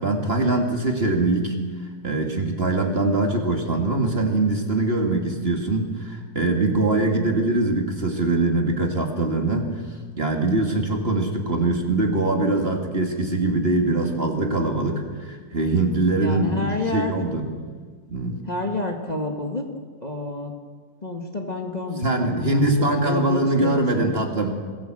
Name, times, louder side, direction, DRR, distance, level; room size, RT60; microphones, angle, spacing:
voice 1, 0.0-1.6 2.0-9.7 10.2-17.5 18.1-18.4 22.0-24.5, right 2 dB, 35° right, 3 dB, 2.4 m, -22 dB
voice 2, 16.2-17.1 18.5-19.6 20.0-20.5 21.0-24.2, left 1 dB, 25° left, 2 dB, 1.7 m, -29 dB
22.0 x 16.0 x 7.7 m, 1.5 s
omnidirectional pair, 1.7 m